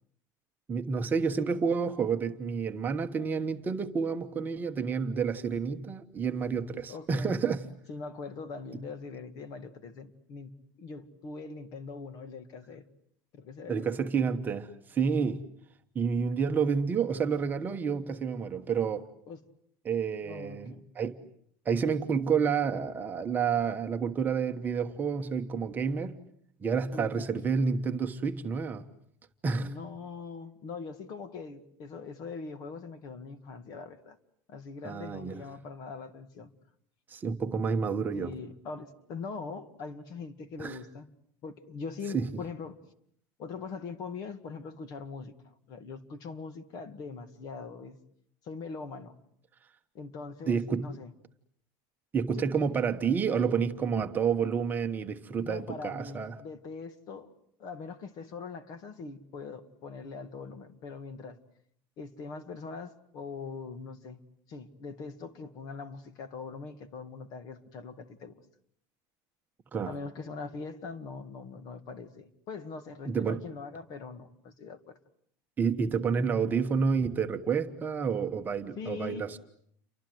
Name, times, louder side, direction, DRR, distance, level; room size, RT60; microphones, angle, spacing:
voice 1, 0.7-7.6 13.7-15.4 15.9-19.1 19.8-21.2 21.6-26.1 26.6-28.8 29.4-29.7 34.8-35.4 37.1-38.3 40.6-40.8 42.1-42.3 50.5-50.9 52.1-56.3 69.7-69.9 73.1-73.4 75.6-79.4, right 6 dB, 20° right, 1.2 m, -29 dB
voice 2, 6.9-7.4 7.9-10.5 10.8-12.9 13.3-13.9 19.3-19.4 20.2-20.9 26.9-27.5 29.5-34.2 34.5-36.5 38.1-41.1 41.4-42.8 43.4-48.0 48.4-49.2 49.9-51.1 55.4-57.3 57.6-61.4 62.0-64.2 64.5-68.4 69.8-75.0 78.8-79.2, left 4 dB, 40° left, 2.1 m, -42 dB
29.5 x 24.5 x 7.9 m
cardioid pair, 170°, 9 cm